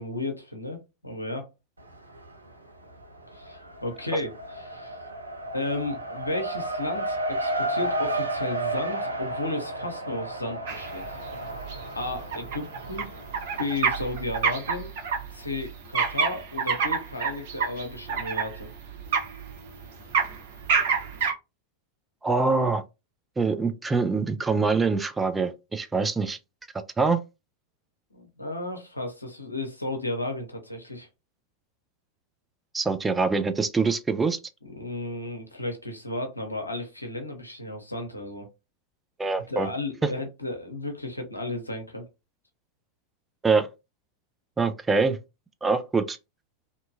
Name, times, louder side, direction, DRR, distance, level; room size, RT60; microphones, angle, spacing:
voice 1, 0.0-1.5 3.3-5.0 5.5-11.2 11.9-13.1 13.6-14.9 15.3-18.7 28.1-31.1 34.6-38.5 39.5-42.0, left 2 dB, 85° left, 0.6 m, -33 dB
Race car auto racing, 1.8-2.5 2.8-14.2, right 1 dB, 80° right, 0.4 m, -33 dB
sound 1, 10.7-21.3, right 5 dB, 55° right, 0.9 m, -28 dB
voice 2, 22.2-22.8 23.4-26.4 27.0-27.2 32.7-34.4 39.2-39.7 43.4-43.7 44.6-45.2 45.6-46.2, right 4 dB, 10° right, 0.3 m, -24 dB
2.7 x 2.2 x 2.5 m
figure-of-eight pair, 90°, 0 cm